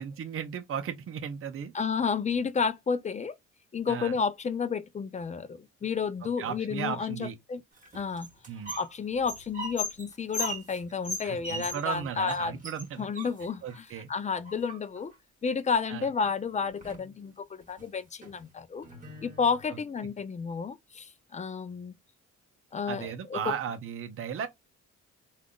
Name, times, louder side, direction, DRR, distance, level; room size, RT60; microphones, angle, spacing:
voice 1, 0.0-1.7 3.9-4.2 6.4-7.4 8.5-8.8 11.2-13.1 13.6-14.1 15.9-16.1 22.9-24.5, right 8 dB, 45° right, 0.6 m, -35 dB
voice 2, 1.7-3.4 3.7-7.6 7.9-8.3 8.8-12.6 13.0-15.1 15.4-18.8 19.2-21.9 22.7-23.5, left 5 dB, 25° left, 0.4 m, -31 dB
sound 1, 7.8-8.9 9.2-12.0 12.3-12.4 12.6-13.8 14.5-15.1 16.2-16.3 16.6-17.1 17.6-17.8 18.2-18.3 18.8-19.6, left 1 dB, 25° right, 1.3 m, -38 dB
3.5 x 2.4 x 2.2 m
cardioid pair, 90°, 30 cm